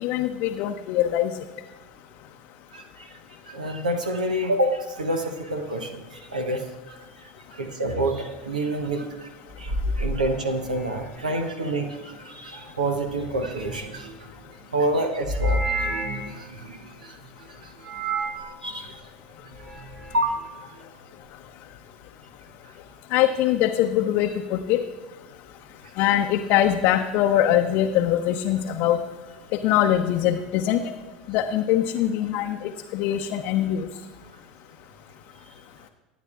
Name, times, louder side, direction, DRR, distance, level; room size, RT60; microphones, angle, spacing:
voice 1, 0.0-1.3 23.1-24.8 26.0-29.0 29.5-30.8 31.3-33.9, left 11 dB, 55° left, 3 dB, 0.6 m, -22 dB
voice 2, 2.7-3.1 3.5-7.0 7.5-9.3 9.6-14.1 14.7-17.2 17.5-17.7 18.4-18.9 20.1-20.5, right 1 dB, 85° right, 6 dB, 0.9 m, -28 dB
sound 1, 7.8-8.1 9.5-11.2 13.0-14.2 15.2-16.4 17.8-18.5 19.4-20.3, equal, 65° right, 2.5 m, -30 dB
25.0 x 9.1 x 2.4 m, 1.2 s
figure-of-eight pair, 75°, 4 cm